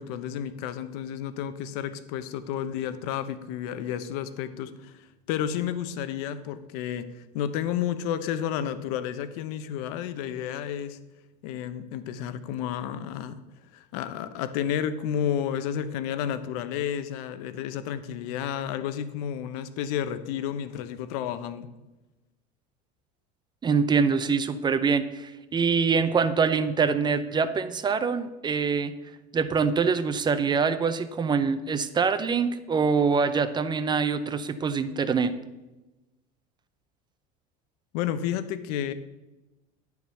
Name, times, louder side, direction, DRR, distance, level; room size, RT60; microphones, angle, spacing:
voice 1, 0.0-11.0 11.4-13.4 13.7-21.7 37.9-38.9, left 9 dB, 80° left, 12 dB, 0.8 m, -31 dB
voice 2, 23.6-28.9 29.3-35.3, right 5 dB, 20° right, 12 dB, 0.6 m, -24 dB
10.5 x 4.7 x 6.9 m, 1.1 s
supercardioid pair, 120°, 19 cm